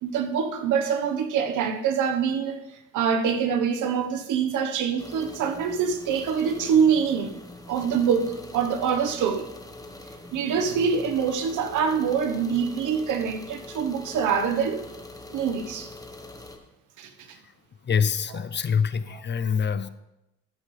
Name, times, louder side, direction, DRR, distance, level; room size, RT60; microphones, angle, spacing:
voice 1, 0.0-2.6 2.9-7.3 7.7-9.5 10.3-14.8 15.3-15.9 17.0-17.4 18.3-18.4 19.1-19.2, right 7 dB, 85° right, 1.2 m, -25 dB
sound 1, 5.0-16.6, left 2 dB, 10° left, 1.3 m, -43 dB
voice 2, 17.9-19.9, left 6 dB, 35° left, 0.6 m, -25 dB
13.5 x 9.3 x 3.3 m
cardioid pair, 90°, 30 cm